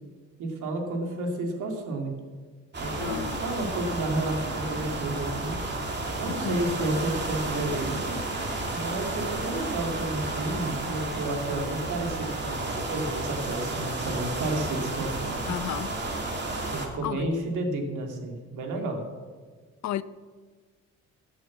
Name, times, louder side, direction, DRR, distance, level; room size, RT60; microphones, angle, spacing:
voice 1, 0.4-2.2 2.8-5.5 6.2-8.2 8.7-15.5 16.7-19.0, right 2 dB, 80° right, 2.5 m, -31 dB
sound 1, 2.7-16.9, right 2 dB, 35° right, 2.7 m, -32 dB
voice 2, 3.0-3.4 6.3-6.7 15.5-16.0 17.0-17.5 19.8-20.0, left 12 dB, 65° left, 0.6 m, -33 dB
13.5 x 7.8 x 7.2 m
cardioid pair, 90°, 30 cm